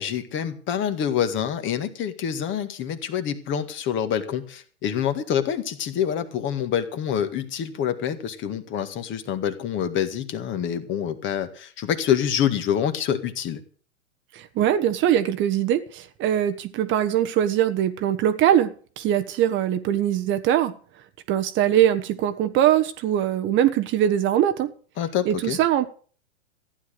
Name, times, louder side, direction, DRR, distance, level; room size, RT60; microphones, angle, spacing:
voice 1, 0.0-13.6 25.0-25.6, left 9 dB, 30° left, 1.9 m, -26 dB
voice 2, 14.3-20.7 21.3-24.7 25.3-25.9, right 11 dB, 30° right, 1.2 m, -22 dB
15.0 x 10.0 x 6.7 m
hypercardioid pair, 115°, 39 cm